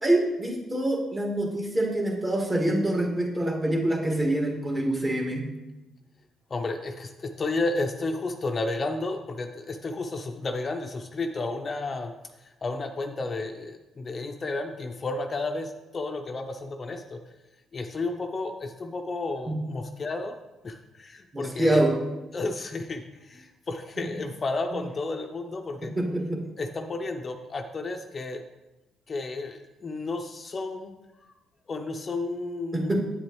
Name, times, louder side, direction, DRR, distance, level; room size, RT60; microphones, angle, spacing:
voice 1, 0.0-5.4 19.5-19.6 21.3-21.9 24.7-24.8 25.8-26.4 32.7-33.0, right 1 dB, 25° right, 0 dB, 1.9 m, -25 dB
voice 2, 6.5-12.1 12.4-17.2 17.7-20.4 20.6-21.8 22.3-25.9 26.6-28.4 29.1-30.9 31.7-32.9, left 3 dB, 40° left, 5 dB, 0.6 m, -32 dB
8.5 x 7.4 x 3.1 m, 1.0 s
cardioid pair, 90°, 0 cm